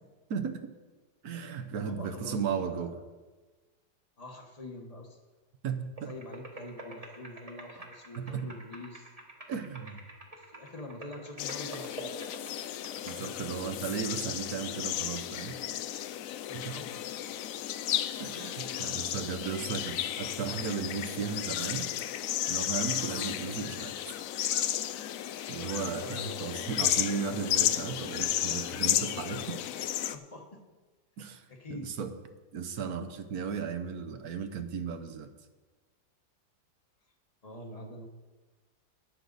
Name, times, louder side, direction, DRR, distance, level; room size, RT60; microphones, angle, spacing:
voice 1, 0.3-0.7 1.2-2.9 5.6-6.1 8.2-8.5 9.5-10.0 13.0-15.6 16.5-16.8 18.2-21.9 22.5-23.9 25.5-29.6 31.2-31.4 31.7-32.1 32.5-35.3, right 6 dB, 60° right, 9 dB, 1.2 m, -35 dB
voice 2, 1.8-3.0 4.2-5.2 6.1-9.1 10.4-12.5 16.5-17.1 26.0-26.5 30.1-30.7 31.5-31.9 37.4-38.1, left 1 dB, 25° left, 2 dB, 1.1 m, -45 dB
sound 1, 6.0-13.1, right 1 dB, 20° right, 1.2 m, -47 dB
sound 2, 11.4-30.2, left 11 dB, 80° left, 0.7 m, -33 dB
19.5 x 6.5 x 4.0 m, 1.2 s
omnidirectional pair, 2.0 m